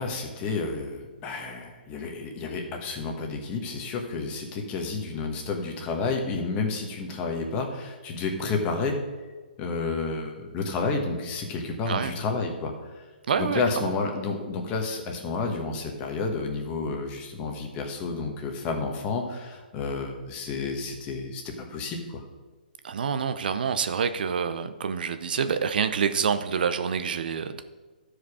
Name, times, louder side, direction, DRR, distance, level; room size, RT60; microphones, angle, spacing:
voice 1, 0.0-9.0 9.6-13.0 13.4-22.2, left 4 dB, 25° left, 3 dB, 1.3 m, -30 dB
voice 2, 13.3-13.9 22.8-27.6, right 6 dB, 65° right, 10 dB, 0.6 m, -27 dB
12.5 x 5.0 x 4.9 m, 1.3 s
hypercardioid pair, 150°, 5 cm